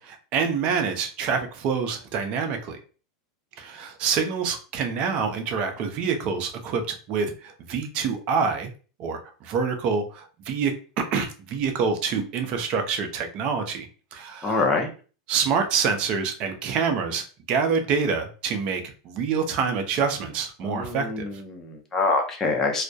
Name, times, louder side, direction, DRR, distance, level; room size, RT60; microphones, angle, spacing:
voice 1, 0.3-2.8 3.6-8.7 9.0-13.9 14.1-14.8 15.3-21.3, right 5 dB, 45° right, 6 dB, 0.5 m, -26 dB
voice 2, 14.4-14.9 20.6-22.8, left 3 dB, 20° left, 1 dB, 0.5 m, -25 dB
2.2 x 2.1 x 2.6 m, 0.37 s
supercardioid pair, 125°, 2 cm